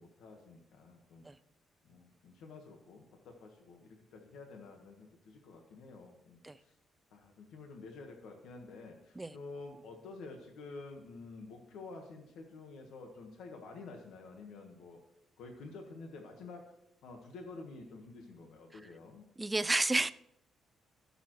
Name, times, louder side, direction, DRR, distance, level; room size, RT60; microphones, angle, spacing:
voice 1, 0.0-1.3 1.8-6.8 7.1-15.0 15.4-16.7 17.0-19.2, left 3 dB, 80° left, 3 dB, 1.4 m, -50 dB
voice 2, 19.4-20.1, right 2 dB, 15° right, 12 dB, 0.5 m, -30 dB
16.5 x 6.9 x 3.1 m, 0.82 s
cardioid pair, 90°, 0 cm